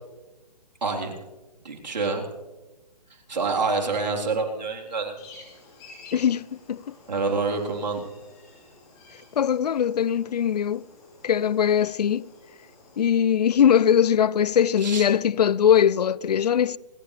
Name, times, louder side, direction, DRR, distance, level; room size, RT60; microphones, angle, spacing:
voice 1, 0.8-1.1 1.6-2.2 3.3-5.2 7.1-8.1 14.8-15.1, right 4 dB, 85° right, 3.9 m, -27 dB
sound 1, 5.2-13.1, left 3 dB, 20° left, 5.2 m, -51 dB
voice 2, 6.1-6.9 9.4-10.9 11.2-12.3 13.0-16.8, left 8 dB, 70° left, 0.5 m, -21 dB
29.5 x 11.5 x 3.3 m
hypercardioid pair, 160°, 21 cm